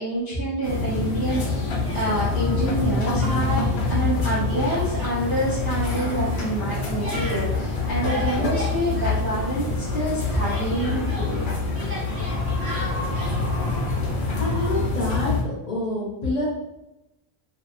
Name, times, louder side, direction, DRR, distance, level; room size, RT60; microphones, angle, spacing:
voice 1, 0.0-1.7 1.9-11.5, right 1 dB, 30° right, -8 dB, 0.4 m, -27 dB
sound 1, 0.6-15.4, left 3 dB, 70° left, 0.9 m, -26 dB
Speech, 1.2-2.6 2.9-3.7 4.0-9.7 10.0-13.4, equal, 80° right, 1.4 m, -37 dB
voice 2, 14.4-16.4, left 1 dB, 45° left, -5 dB, 0.7 m, -27 dB
2.7 x 2.3 x 2.4 m, 0.91 s
omnidirectional pair, 1.1 m